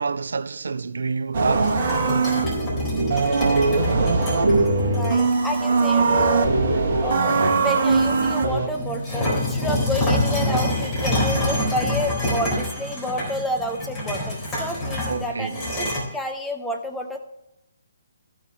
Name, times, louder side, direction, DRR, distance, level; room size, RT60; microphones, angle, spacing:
voice 1, 0.0-1.8 15.1-15.6, right 4 dB, 65° right, 0.5 m, -27 dB
sound 1, 1.3-8.7, right 3 dB, 45° right, 1.4 m, -21 dB
sound 2, 1.6-5.3 5.9-6.0 6.4-7.5 7.9-16.0, left 1 dB, 20° left, 4.0 m, -26 dB
voice 2, 4.9-17.2, left 1 dB, 5° left, 1.0 m, -30 dB
14.0 x 6.3 x 3.3 m
figure-of-eight pair, 135°, 0 cm